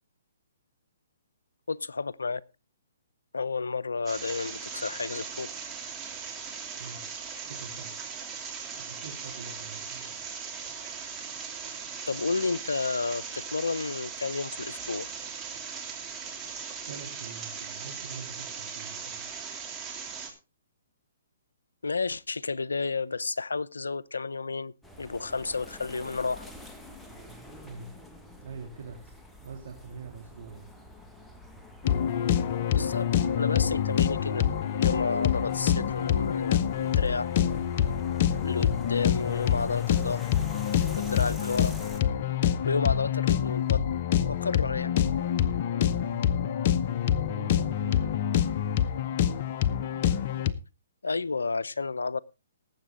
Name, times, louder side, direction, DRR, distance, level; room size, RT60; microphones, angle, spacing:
voice 1, 1.7-2.4 3.3-5.5 12.1-15.1 21.8-24.7 25.0-26.5 32.7-33.1 33.4-34.5 34.8-37.3 38.4-40.2 40.9-41.7 42.6-43.8 44.2-44.9 51.0-52.2, left 4 dB, 85° left, 0.6 m, -31 dB
sound 1, 4.1-20.3, right 6 dB, 15° right, 3.0 m, -39 dB
voice 2, 7.4-7.9 8.8-10.1 16.8-19.2 27.6-28.0 28.4-29.1 29.4-30.7 46.1-48.3, right 4 dB, 65° right, 2.9 m, -44 dB
sound 2, 24.8-42.0, left 1 dB, 5° left, 1.6 m, -46 dB
sound 3, 31.8-50.5, left 9 dB, 45° left, 0.8 m, -26 dB
19.0 x 8.0 x 3.7 m
hypercardioid pair, 130°, 0 cm